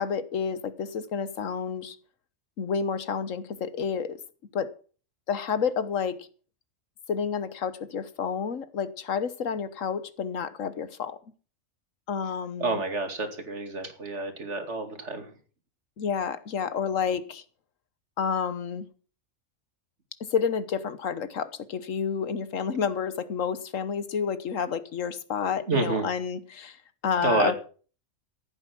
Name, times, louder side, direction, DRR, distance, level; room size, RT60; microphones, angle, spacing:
voice 1, 0.0-2.0 2.6-4.2 4.5-4.7 5.3-6.3 7.1-11.2 12.1-12.8 16.0-17.4 18.2-18.9 20.3-27.5, left 6 dB, 75° left, 14 dB, 1.5 m, -30 dB
voice 2, 12.6-15.3 25.4-26.1 27.2-27.6, right 3 dB, 60° right, 6 dB, 2.7 m, -29 dB
15.0 x 9.4 x 6.1 m, 0.40 s
omnidirectional pair, 1.4 m